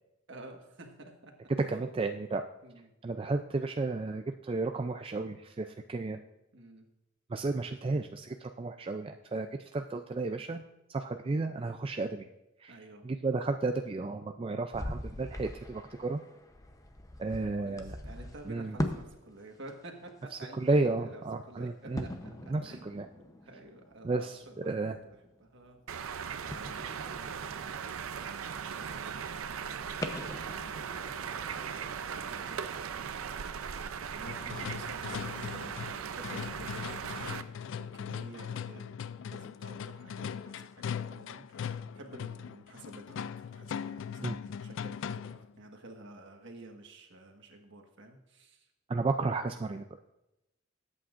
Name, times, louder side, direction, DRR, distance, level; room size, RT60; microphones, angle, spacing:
voice 1, 0.3-1.8 2.6-2.9 6.5-6.9 12.7-13.0 17.3-24.8 25.0-25.8 26.4-28.2 28.7-31.6 31.9-48.7, right 2 dB, 60° right, 3 dB, 1.5 m, -51 dB
voice 2, 1.7-2.4 3.0-6.2 7.3-10.6 10.9-12.3 12.6-12.8 13.0-16.2 17.2-18.0 18.5-18.8 20.3-22.1 22.5-23.1 24.0-25.0 44.2-44.3 48.9-49.8, right 3 dB, 25° right, 6 dB, 0.4 m, -33 dB
sound 1, 14.7-19.1 19.4-20.4 22.0-26.0 26.5-28.4 28.9-29.0 30.0-33.3 33.7-33.8, left 1 dB, 15° left, 0.7 m, -42 dB
sound 2, 25.9-37.4, right 7 dB, 85° right, 0.5 m, -38 dB
sound 3, 34.3-45.5, left 7 dB, 65° left, 0.3 m, -40 dB
20.0 x 8.5 x 2.5 m, 0.92 s
head